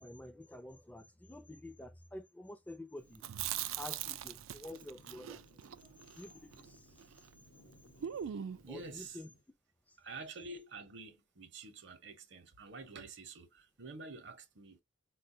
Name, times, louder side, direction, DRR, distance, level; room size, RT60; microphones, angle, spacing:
voice 1, 0.0-3.5 3.8-5.4 5.8-7.0 8.7-9.3 9.9-10.0, left 1 dB, 10° left, 0.4 m, -49 dB
Chewing mastication, 3.1-7.3 7.6-7.7 8.0-8.8, right 10 dB, 85° right, 0.4 m, -41 dB
sound 1, 3.4-9.4, left 2 dB, 75° left, 0.8 m, -65 dB
voice 2, 8.2-9.2 10.0-14.8, right 3 dB, 60° right, 0.7 m, -49 dB
4.3 x 2.2 x 2.6 m
head